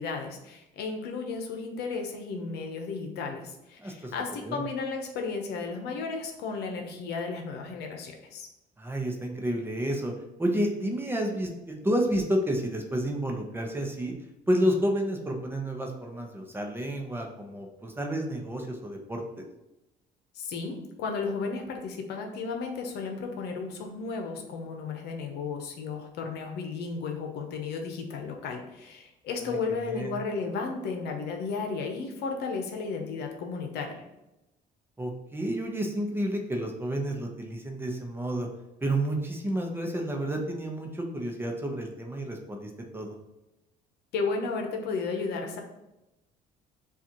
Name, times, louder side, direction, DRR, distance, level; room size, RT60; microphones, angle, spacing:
voice 1, 0.0-8.5 20.3-34.0 44.1-45.6, left 4 dB, 75° left, 3 dB, 0.8 m, -34 dB
voice 2, 3.8-4.1 4.4-4.6 8.8-10.1 10.4-14.1 14.5-19.4 29.5-30.1 35.0-38.5 38.8-43.1, right 1 dB, 15° right, 2 dB, 0.7 m, -30 dB
7.0 x 2.5 x 2.9 m, 0.95 s
cardioid pair, 110°, 17 cm